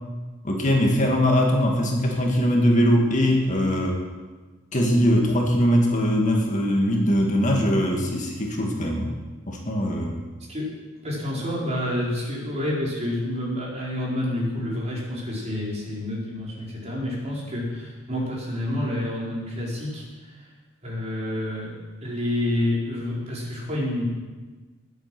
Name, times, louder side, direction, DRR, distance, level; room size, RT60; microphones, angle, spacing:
voice 1, 0.4-4.0 4.7-9.1 9.5-10.2, equal, 40° left, 0 dB, 2.1 m, -21 dB
voice 2, 11.0-20.5 20.8-24.0, left 1 dB, 35° right, -5 dB, 4.8 m, -28 dB
20.5 x 8.5 x 6.1 m, 1.3 s
head